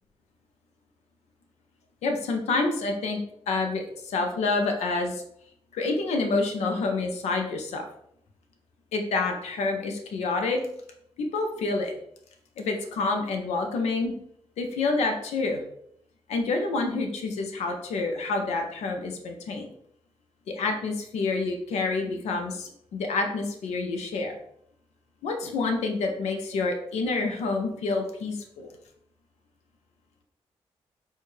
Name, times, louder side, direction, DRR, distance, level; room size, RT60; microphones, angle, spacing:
voice 1, 2.0-3.2 3.5-5.2 5.7-7.9 8.9-10.6 11.2-11.9 12.6-14.1 14.6-15.6 16.3-19.7 20.5-24.4 25.2-28.7, left 3 dB, 90° left, 4 dB, 0.6 m, -28 dB
4.4 x 2.3 x 3.1 m, 0.71 s
cardioid pair, 65°, 11 cm